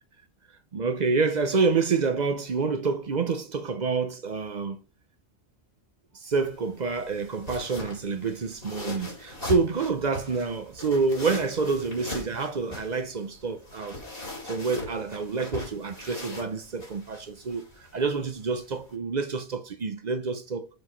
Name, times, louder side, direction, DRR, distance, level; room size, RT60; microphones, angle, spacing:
voice 1, 0.7-4.8 6.1-14.0 14.4-20.7, right 4 dB, 45° right, 0.7 m, -28 dB
sound 1, 6.3-18.9, left 1 dB, 55° left, 2.9 m, -40 dB
6.3 x 4.6 x 5.1 m
omnidirectional pair, 1.1 m